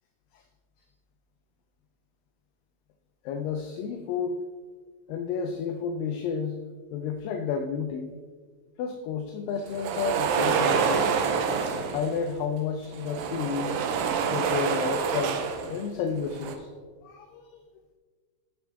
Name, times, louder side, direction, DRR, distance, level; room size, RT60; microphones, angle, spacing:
voice 1, 3.3-4.4 5.1-6.6 6.9-8.1 8.8-11.1 11.9-13.8 14.3-15.4 15.7-16.7 17.0-17.6, left 6 dB, 80° left, 5 dB, 2.2 m, -31 dB
sound 1, 9.7-12.2 12.9-15.8 16.2-16.5, right 6 dB, 80° right, 2.5 m, -27 dB
16.0 x 6.1 x 3.5 m, 1.5 s
omnidirectional pair, 4.3 m